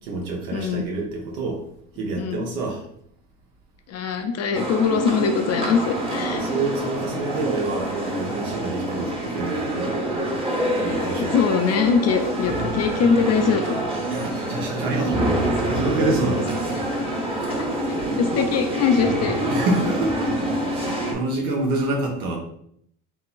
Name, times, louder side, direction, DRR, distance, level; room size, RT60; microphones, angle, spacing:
voice 1, 0.0-1.6 1.9-2.8 6.3-10.0 10.8-11.3 14.1-15.3 15.6-16.5 19.5-22.4, right 2 dB, 85° right, 1 dB, 1.0 m, -27 dB
voice 2, 0.5-0.9 2.2-2.5 3.9-6.4 11.2-13.8 16.4-16.5 17.5-17.7 18.2-19.3, left 6 dB, 35° left, 6 dB, 0.4 m, -22 dB
sound 1, 4.5-21.1, right 1 dB, 10° right, 0.7 m, -26 dB
3.8 x 2.8 x 2.3 m, 0.68 s
supercardioid pair, 80°, 48 cm